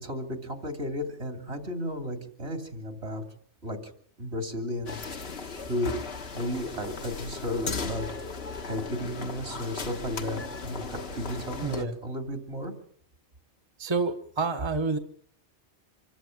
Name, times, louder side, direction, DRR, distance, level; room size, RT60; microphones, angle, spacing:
voice 1, 0.0-3.2 3.6-3.8 4.2-5.0 5.7-5.9 6.3-8.1 8.6-12.7, left 1 dB, 70° right, 5 dB, 3.4 m, -33 dB
sound 1, 4.9-11.8, left 4 dB, 65° left, 1.7 m, -37 dB
voice 2, 11.6-12.0 13.8-15.0, right 4 dB, 25° right, 6 dB, 1.1 m, -28 dB
26.0 x 14.5 x 7.8 m, 0.62 s
omnidirectional pair, 1.1 m